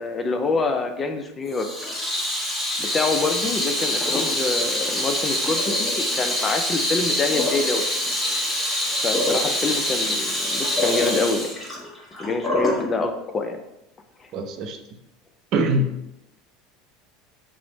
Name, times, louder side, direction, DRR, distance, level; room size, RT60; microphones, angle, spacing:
voice 1, 0.0-1.7 2.8-7.8 9.0-11.5 12.2-13.6 14.2-14.3, left 3 dB, 25° left, 6 dB, 0.4 m, -26 dB
Water tap faucet / Sink (filling or washing), 1.5-12.8, left 1 dB, 5° left, 1.0 m, -25 dB
voice 2, 14.3-14.8 15.5-15.9, right 1 dB, 55° right, 6 dB, 0.4 m, -23 dB
3.0 x 2.0 x 3.9 m, 0.87 s
supercardioid pair, 100°, 0 cm